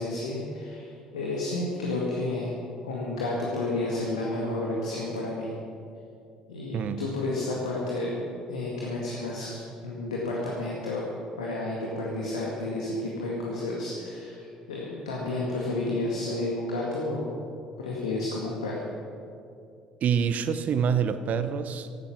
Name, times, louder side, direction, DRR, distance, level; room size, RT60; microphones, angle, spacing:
voice 1, 0.0-2.5 2.8-5.5 6.5-11.0 11.4-17.4 17.8-18.8, left 2 dB, 80° left, 2.0 m, -31 dB
voice 2, 6.7-7.1 20.0-22.0, right 7 dB, 50° right, 0.9 m, -26 dB
16.5 x 11.5 x 6.0 m
figure-of-eight pair, 55°, 3 cm